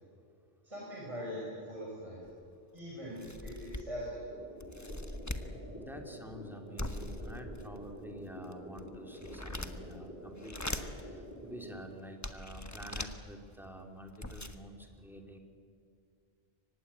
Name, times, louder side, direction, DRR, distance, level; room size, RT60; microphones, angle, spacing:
voice 1, 0.6-2.2 2.7-4.3, equal, 30° right, -5 dB, 5.7 m, -41 dB
sound 1, 2.3-2.4 2.8-2.9 3.2-4.1 4.6-5.5 6.8-7.9 8.4-10.0 10.4-11.0 11.6-11.7 12.2-13.1 13.8-13.9 14.1-14.6, left 1 dB, 15° left, 1.2 m, -41 dB
sound 2, 4.3-11.8, equal, 55° left, 4.1 m, -48 dB
voice 2, 5.7-10.8 11.1-15.4, equal, ahead, 2 dB, 2.8 m, -48 dB
24.0 x 18.5 x 9.8 m, 2.3 s
omnidirectional pair, 1.0 m